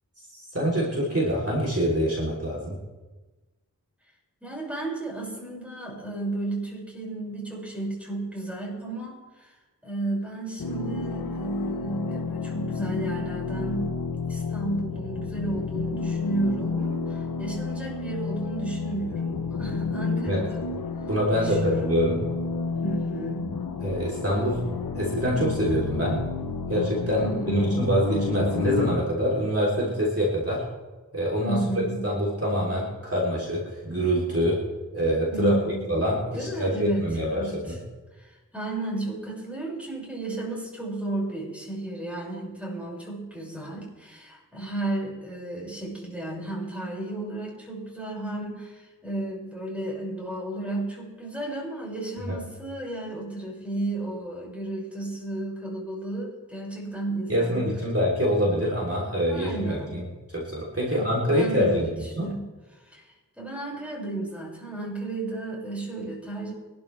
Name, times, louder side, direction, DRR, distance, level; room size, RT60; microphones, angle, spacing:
voice 1, 0.3-2.8 20.3-20.4 21.1-22.2 23.8-24.6 24.9-26.2 26.7-30.6 31.1-31.6 32.0-34.6 34.9-37.8 52.3-52.4 57.3-60.0 60.3-62.3, equal, 40° right, -5 dB, 3.6 m, -25 dB
voice 2, 4.4-9.6 9.8-20.7 21.3-22.0 22.8-23.6 27.2-27.9 31.4-32.1 35.3-35.9 36.3-37.8 38.1-57.7 59.2-60.0 60.8-66.5, right 2 dB, 5° right, -3 dB, 6.3 m, -33 dB
sound 1, 10.6-29.0, left 4 dB, 85° left, 0.9 m, -31 dB
24.5 x 12.0 x 3.4 m, 1.2 s
wide cardioid pair, 65°, 34 cm